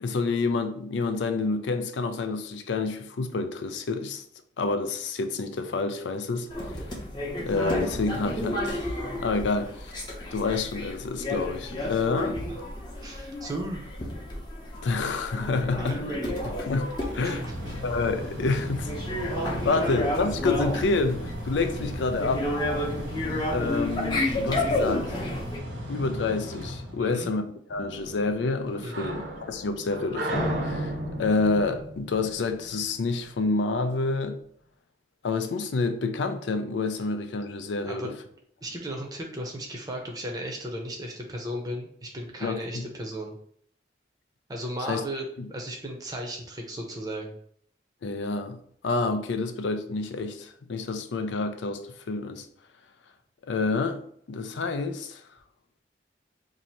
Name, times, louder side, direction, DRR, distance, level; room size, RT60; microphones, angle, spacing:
voice 1, 0.0-4.2 4.6-6.9 7.4-10.0 10.3-12.4 14.8-16.0 16.4-17.5 17.8-18.9 19.4-22.5 23.5-25.2 25.9-27.4 27.7-34.4 35.2-38.1 42.4-42.8 44.9-45.0 45.4-45.5 48.0-48.6 48.8-52.5 53.4-54.0 54.3-55.2, left 3 dB, 80° left, 0.4 m, -28 dB
sound 1, 6.5-25.6, left 1 dB, 25° left, 0.7 m, -32 dB
voice 2, 13.0-13.9 15.8-16.0 17.2-17.7 27.0-27.3 28.8-29.2 37.8-38.2 38.6-43.4 44.5-47.4, right 1 dB, 20° right, 0.6 m, -35 dB
Mechanical fan, 16.9-27.4, equal, 90° right, 1.3 m, -37 dB
sound 2, 27.7-33.2, right 1 dB, 70° right, 0.7 m, -34 dB
2.8 x 2.6 x 4.3 m
head